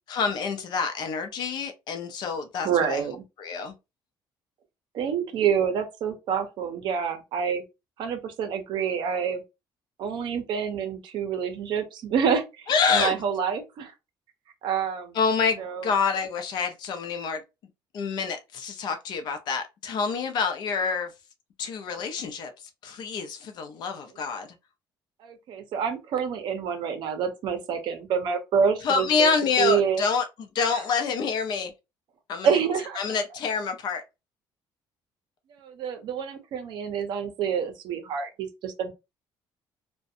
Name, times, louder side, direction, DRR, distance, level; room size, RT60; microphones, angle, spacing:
voice 1, 0.1-3.0 3.4-3.7 12.7-13.1 15.1-17.4 17.9-21.1 21.6-22.5 22.8-24.5 28.8-31.7 32.3-32.6 33.0-34.0, left 5 dB, 55° left, 0.5 m, -27 dB
voice 2, 2.6-3.2 4.9-7.6 8.0-9.4 10.0-13.9 14.6-15.2 15.6-15.9 25.2-29.3 29.6-30.0 32.4-33.0 35.6-38.9, right 7 dB, 60° right, 0.6 m, -27 dB
2.5 x 2.2 x 2.5 m
cardioid pair, 170°, 9 cm